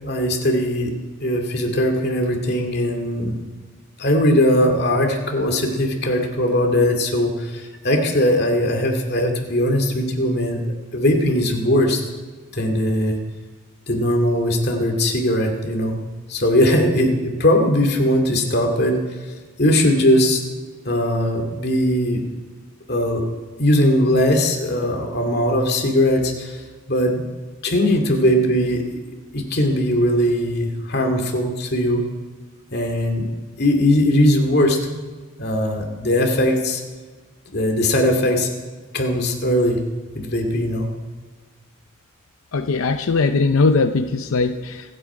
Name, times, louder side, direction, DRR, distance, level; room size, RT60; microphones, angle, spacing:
voice 1, 0.0-0.9 1.2-3.3 4.0-10.6 10.9-12.0 12.5-13.2 13.9-16.0 16.3-19.0 19.6-20.4 20.8-22.2 22.9-23.3 23.6-26.6 26.9-27.3 27.6-28.9 29.3-32.1 32.7-33.3 33.6-34.8 35.4-36.8 37.5-38.5 38.9-39.8 40.1-40.9, left 1 dB, 50° left, 3 dB, 2.4 m, -19 dB
voice 2, 42.5-44.9, left 3 dB, 90° left, 8 dB, 0.6 m, -20 dB
26.0 x 8.8 x 4.9 m, 1.4 s
head